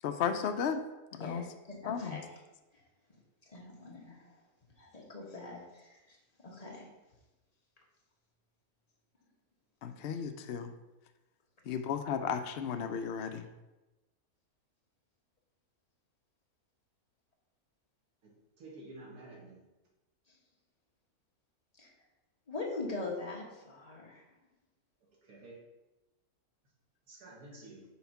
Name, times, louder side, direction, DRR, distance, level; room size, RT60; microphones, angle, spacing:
voice 1, 0.0-0.8 1.2-1.4 1.9-2.2 9.8-10.7 11.7-13.5, left 7 dB, 65° left, 7 dB, 0.6 m, -34 dB
voice 2, 1.2-2.4 2.7-2.8 3.1-4.3 4.8-6.2 6.4-6.9 20.3-20.4 21.8-21.9 22.5-24.2 27.5-27.6, left 3 dB, 25° left, -2 dB, 1.3 m, -43 dB
voice 3, 18.6-19.6 25.3-25.6 27.1-27.8, right 2 dB, 90° right, -2 dB, 2.0 m, -50 dB
5.6 x 4.0 x 5.8 m, 1.0 s
omnidirectional pair, 1.6 m